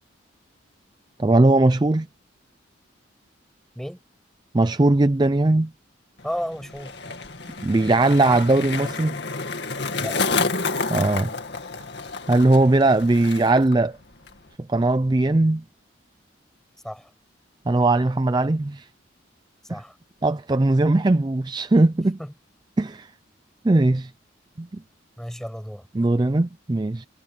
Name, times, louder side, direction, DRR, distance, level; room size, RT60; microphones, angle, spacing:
voice 1, 1.2-2.1 4.5-5.7 7.6-9.2 10.9-11.3 12.3-14.0 14.6-15.6 17.7-18.9 19.7-19.8 20.2-22.2 22.8-23.1 23.6-24.1 24.6-24.7 25.9-27.1, right 2 dB, 20° right, 0.4 m, -19 dB
Skateboard, 6.2-13.8 14.0-14.5, left 4 dB, 60° left, 2.4 m, -30 dB
voice 2, 6.2-7.0 10.0-10.2 16.8-17.1 19.6-20.0 22.2-22.3 25.2-25.9, equal, ahead, 6.4 m, -33 dB
head